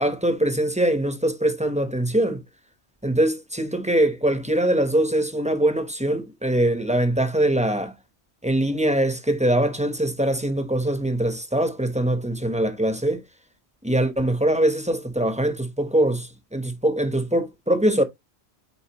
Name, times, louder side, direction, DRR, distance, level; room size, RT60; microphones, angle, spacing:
voice 1, 0.0-2.4 3.0-7.9 8.4-13.2 13.8-18.0, right 1 dB, 5° right, 0.9 m, -22 dB
8.7 x 3.9 x 2.9 m
omnidirectional pair, 1.1 m